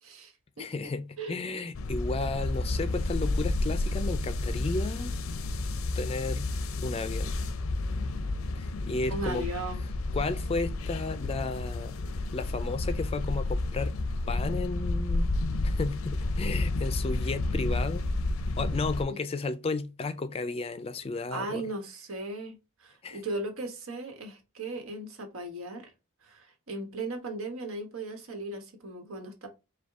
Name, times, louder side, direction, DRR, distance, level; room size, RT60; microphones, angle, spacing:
voice 1, 0.0-1.4 9.1-9.9 19.1-19.2 21.3-25.9 26.2-29.5, right 2 dB, 90° right, 1.4 m, -37 dB
voice 2, 0.6-5.1 6.0-6.5 6.8-7.4 8.6-9.5 10.1-12.0 12.3-14.0 14.3-15.3 15.6-18.1 18.6-21.6 23.0-23.2, left 3 dB, 30° left, 0.3 m, -33 dB
sound 1, 1.7-19.1, left 2 dB, 85° left, 0.5 m, -31 dB
5.1 x 2.3 x 3.6 m
head